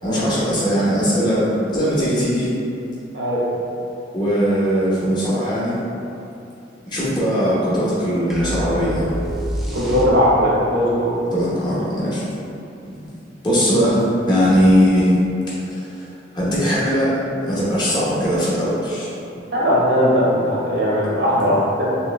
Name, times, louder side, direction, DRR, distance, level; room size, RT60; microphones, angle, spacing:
voice 1, 0.0-2.5 4.1-5.8 6.8-9.1 11.3-12.2 12.8-12.9 13.4-15.1 15.6-17.2 17.5-19.1, equal, 25° left, -9 dB, 0.8 m, -19 dB
sound 1, 8.3-10.6, equal, ahead, 0.3 m, -27 dB
voice 2, 9.7-11.1 19.5-21.8, equal, 75° right, -7 dB, 1.0 m, -18 dB
3.1 x 3.0 x 3.1 m, 2.8 s
head